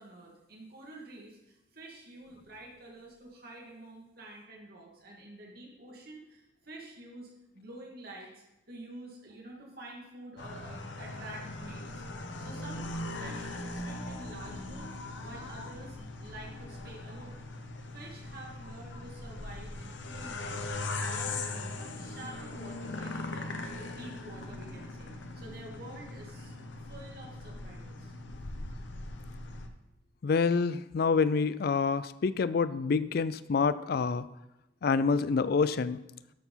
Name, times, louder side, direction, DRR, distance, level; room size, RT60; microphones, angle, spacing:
voice 1, 0.0-12.9 13.1-17.4 17.9-26.5 26.9-28.1, right 2 dB, 55° right, -2 dB, 2.4 m, -49 dB
sound 1, 10.4-29.7, left 2 dB, 75° left, 0.9 m, -40 dB
voice 2, 30.2-34.3 34.8-36.0, left 5 dB, 55° left, 16 dB, 0.4 m, -27 dB
12.5 x 4.7 x 5.6 m, 0.92 s
head